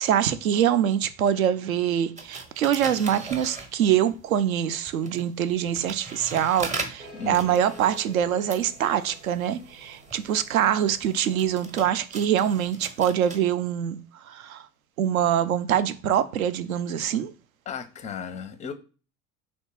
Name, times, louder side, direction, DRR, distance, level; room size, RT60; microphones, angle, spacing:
voice 1, 0.0-14.0 14.3-14.7 15.0-17.3, right 9 dB, 70° right, 0.6 m, -24 dB
sound 1, 2.2-4.2 4.9-13.4, right 3 dB, 15° right, 0.8 m, -40 dB
sound 2, 7.0-12.1, equal, 90° right, 1.1 m, -49 dB
voice 2, 7.1-7.5 17.7-18.7, left 7 dB, 15° left, 0.5 m, -35 dB
3.3 x 2.9 x 4.3 m
figure-of-eight pair, 70°, 43 cm